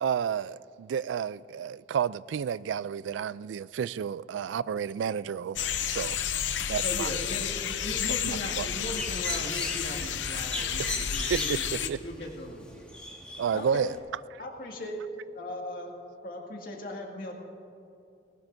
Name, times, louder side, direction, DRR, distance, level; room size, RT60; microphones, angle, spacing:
voice 1, 0.0-6.2 6.7-7.1 8.6-8.7 10.8-10.9 11.3-11.6 11.9-12.0 13.4-14.0, right 7 dB, 85° right, 0.3 m, -31 dB
sound 1, 5.6-11.9, left 8 dB, 85° left, 0.7 m, -31 dB
voice 2, 6.8-12.8, left 1 dB, 70° left, 2.2 m, -38 dB
Bird, 8.5-14.0, left 1 dB, 5° left, 1.5 m, -39 dB
voice 3, 13.5-14.0 14.4-15.1 15.3-15.9 16.2-17.3, left 1 dB, 55° left, 2.1 m, -38 dB
20.0 x 18.0 x 2.6 m
head